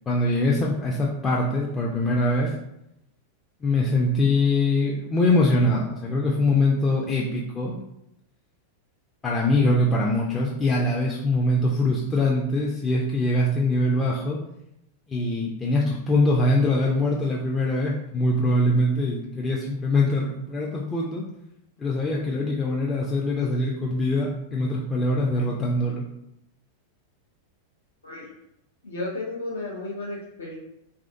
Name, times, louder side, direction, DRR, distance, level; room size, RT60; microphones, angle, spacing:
voice 1, 0.1-2.5 3.6-7.8 9.2-14.4 15.1-21.2 21.8-26.0, left 2 dB, 20° left, -3 dB, 0.4 m, -23 dB
voice 2, 28.8-30.6, left 2 dB, 70° left, -5 dB, 0.6 m, -33 dB
3.3 x 2.4 x 2.5 m, 0.82 s
figure-of-eight pair, 90°, 0 cm